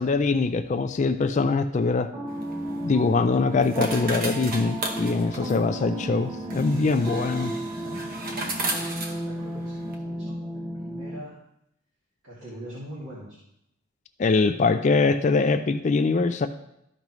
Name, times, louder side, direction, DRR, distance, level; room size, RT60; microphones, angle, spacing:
voice 1, 0.0-2.1 2.8-7.5 14.2-16.5, left 4 dB, 35° left, 9 dB, 0.4 m, -23 dB
sound 1, 2.1-11.2, equal, 20° right, 0.8 m, -33 dB
sound 2, 2.3-10.0, right 2 dB, 45° right, 1.1 m, -35 dB
voice 2, 8.5-11.4 12.2-13.4, equal, 85° right, -8 dB, 2.3 m, -43 dB
13.0 x 5.3 x 3.1 m, 0.79 s
head